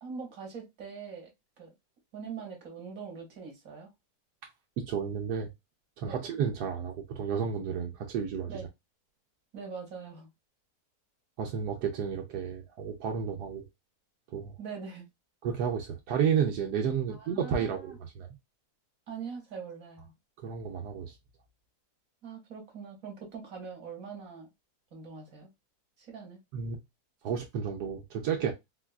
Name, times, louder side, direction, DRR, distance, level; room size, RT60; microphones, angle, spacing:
voice 1, 0.0-1.3 1.6-1.7 2.1-3.9 6.1-6.2 8.5-8.7 9.5-10.3 14.6-15.1 17.1-18.0 19.1-20.1 22.2-24.5 24.9-25.5 26.0-26.4, right 5 dB, 60° right, 1.4 m, -42 dB
voice 2, 4.8-5.5 6.0-8.5 11.4-13.6 14.3-14.6 15.4-18.3 20.4-21.1 26.5-26.8 27.2-28.5, right 7 dB, 80° right, 1.2 m, -31 dB
4.2 x 2.3 x 2.3 m
omnidirectional pair, 1.7 m